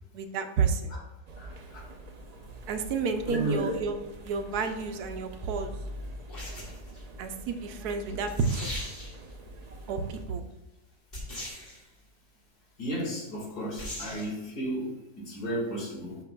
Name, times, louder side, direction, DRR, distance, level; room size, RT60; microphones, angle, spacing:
voice 1, 0.1-0.9 2.7-4.0 4.2-5.8 7.2-8.7 9.9-10.4, right 5 dB, 85° right, 7 dB, 1.2 m, -30 dB
sound 1, 1.3-10.3, equal, 60° right, 0.4 m, -44 dB
voice 2, 1.4-1.9 3.3-3.7 12.8-16.2, right 1 dB, 85° left, -2 dB, 2.5 m, -33 dB
sound 2, 4.5-4.7 6.3-7.0 8.0-8.1 8.3-9.3 11.1-11.8 13.8-14.3, equal, 35° left, 2.2 m, -39 dB
11.5 x 5.9 x 2.3 m, 0.94 s
omnidirectional pair, 1.6 m